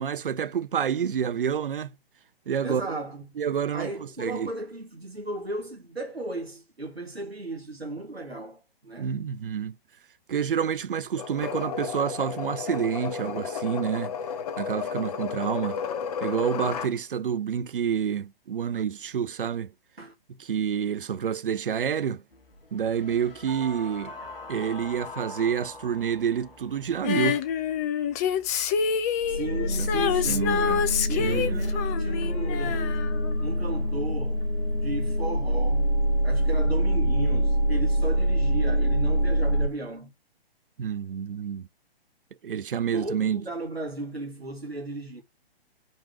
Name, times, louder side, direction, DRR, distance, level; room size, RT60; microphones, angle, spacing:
voice 1, 0.0-1.9 2.5-3.0 3.4-3.9 4.2-4.5 9.0-9.8 10.3-14.1 14.6-15.8 16.2-19.7 20.4-22.2 22.7-24.1 24.5-27.4 29.8-30.9 31.2-31.7 40.8-41.7 42.4-43.4, right 8 dB, 60° right, 0.6 m, -28 dB
voice 2, 2.6-3.2 3.7-9.1 20.0-20.1 29.3-30.8 31.1-33.0 33.4-34.4 34.7-35.9 36.2-40.1 42.9-45.2, right 2 dB, 85° right, 1.9 m, -35 dB
sound 1, 11.2-16.9, left 6 dB, 40° left, 1.0 m, -33 dB
sound 2, 22.3-22.4 22.9-26.7 29.2-39.7, equal, 65° left, 1.5 m, -26 dB
Female singing, 27.0-33.7 34.0-34.1, left 7 dB, 15° left, 0.5 m, -27 dB
5.2 x 5.1 x 5.7 m
figure-of-eight pair, 125°, 30 cm